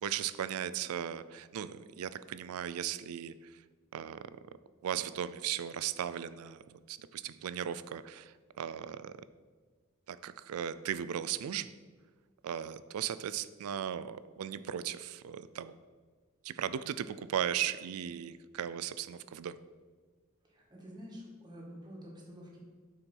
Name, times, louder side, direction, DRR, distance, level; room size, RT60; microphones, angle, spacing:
voice 1, 0.0-3.6 3.9-4.3 4.8-6.6 6.9-9.1 10.1-11.8 12.4-15.8 16.4-19.6, right 9 dB, 90° right, 15 dB, 0.4 m, -37 dB
voice 2, 20.4-22.6, equal, 20° right, -3 dB, 1.6 m, -48 dB
6.8 x 4.5 x 5.4 m, 1.5 s
head